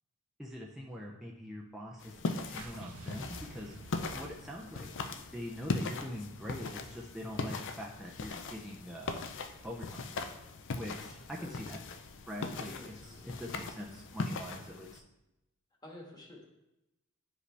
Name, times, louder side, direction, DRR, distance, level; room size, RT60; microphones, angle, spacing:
voice 1, 0.4-3.8 4.1-9.2 9.6-10.0 10.7-11.8 12.3-15.0, equal, ahead, -3 dB, 0.5 m, -43 dB
sound 1, 2.0-15.0, left 3 dB, 55° left, 0.5 m, -40 dB
sound 2, 2.4-6.7, right 3 dB, 70° right, 0.6 m, -52 dB
voice 2, 12.5-13.2 15.8-16.4, left 1 dB, 20° left, -2 dB, 1.5 m, -50 dB
9.5 x 5.0 x 3.3 m, 0.93 s
head